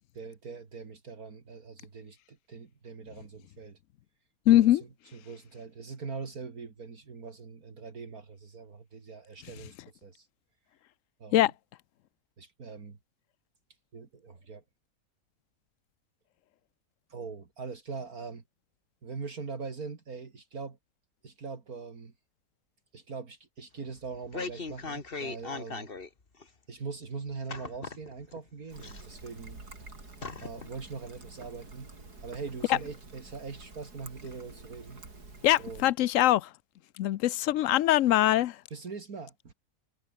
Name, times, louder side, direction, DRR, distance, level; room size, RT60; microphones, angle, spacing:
voice 1, 0.0-3.8 4.5-4.8 5.1-10.3 11.2-11.5 12.4-13.0 13.9-14.6 17.1-18.4 19.0-20.8 21.2-22.1 22.9-25.9 26.7-29.6 30.4-31.9 32.2-35.0 35.6-35.9 38.7-39.5, right 5 dB, 65° right, 2.9 m, -42 dB
voice 2, 4.5-4.8 11.3-11.5 35.4-36.5 37.0-38.6, left 13 dB, 65° left, 0.9 m, -22 dB
sound 1, 24.0-26.1 26.4-26.5 27.5-28.4 28.8-29.5 29.8-29.9 30.2-30.7 31.1-31.2, left 4 dB, 35° left, 2.0 m, -39 dB
Trickle dribble, 28.7-35.8, right 3 dB, 85° right, 5.2 m, -49 dB
omnidirectional pair, 1.6 m